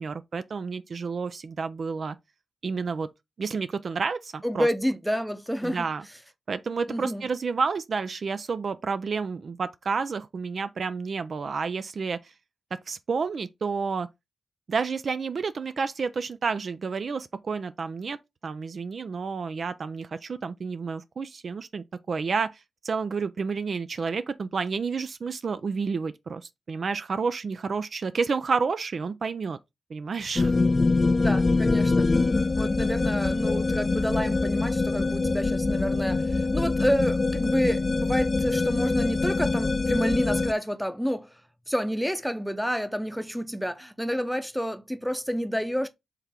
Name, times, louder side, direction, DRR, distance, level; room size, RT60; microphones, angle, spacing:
voice 1, 0.0-2.2 2.6-3.1 3.4-4.7 5.6-6.1 6.5-12.3 12.7-14.1 14.7-18.2 18.4-29.6 29.9-30.6, right 5 dB, 60° right, 0.3 m, -30 dB
voice 2, 4.4-5.9 6.9-7.3 31.2-32.1 32.5-41.3 41.7-45.9, equal, ahead, 0.7 m, -29 dB
sound 1, 30.4-40.5, left 3 dB, 35° left, 0.3 m, -24 dB
3.6 x 3.4 x 4.2 m
supercardioid pair, 45°, 0 cm